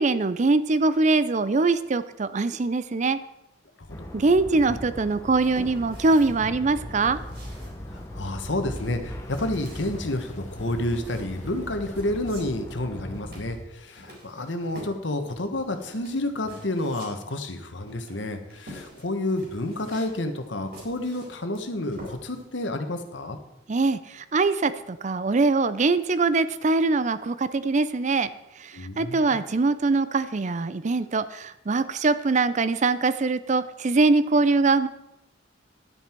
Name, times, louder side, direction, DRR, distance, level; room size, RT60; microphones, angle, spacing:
voice 1, 0.0-3.2 4.1-7.2 23.7-28.3 28.6-34.9, right 3 dB, 40° right, 14 dB, 0.5 m, -23 dB
voice 2, 3.8-4.2 7.9-23.4 28.7-29.4, left 1 dB, 75° left, 7 dB, 1.3 m, -30 dB
sound 1, 3.8-13.6, equal, 40° left, 1.4 m, -42 dB
sound 2, 3.9-13.2, left 1 dB, 15° left, 1.0 m, -41 dB
sound 3, 5.0-22.5, equal, 55° right, 4.1 m, -47 dB
11.0 x 9.5 x 4.6 m, 0.87 s
head